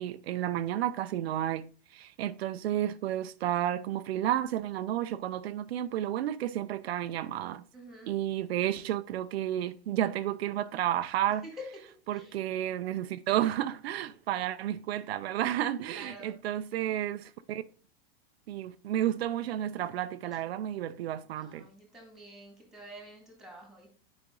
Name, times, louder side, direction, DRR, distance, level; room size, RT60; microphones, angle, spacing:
voice 1, 0.0-7.6 8.1-11.4 12.1-17.6 18.5-21.6, right 12 dB, 75° right, 0.6 m, -31 dB
voice 2, 7.7-8.2 11.4-11.7 12.1-12.4 15.9-16.4 21.3-23.9, equal, ahead, 2.0 m, -48 dB
9.6 x 5.1 x 3.8 m
supercardioid pair, 170°, 31 cm